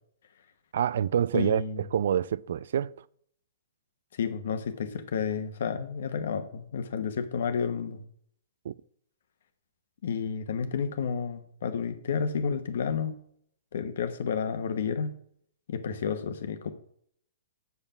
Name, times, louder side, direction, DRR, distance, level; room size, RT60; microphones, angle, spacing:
voice 1, 0.7-3.0 8.6-8.7, right 9 dB, 65° right, 0.3 m, -27 dB
voice 2, 1.3-1.8 4.1-8.0 10.0-13.2 13.7-15.1 15.7-16.7, left 6 dB, 65° left, 1.2 m, -31 dB
7.1 x 7.0 x 5.7 m
hypercardioid pair, 120°, 0 cm